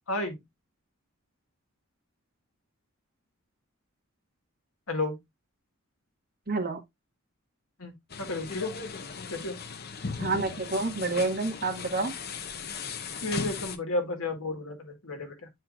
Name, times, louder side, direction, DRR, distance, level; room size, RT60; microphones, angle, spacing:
voice 1, 0.1-0.4 4.9-5.2 7.8-8.8 9.3-9.6 13.2-15.5, left 2 dB, 75° left, 1.8 m, -32 dB
voice 2, 6.5-6.8 10.2-12.1, right 3 dB, 45° right, 1.8 m, -28 dB
sound 1, 8.1-13.8, left 5 dB, 45° left, 0.7 m, -37 dB
9.0 x 4.4 x 2.5 m
head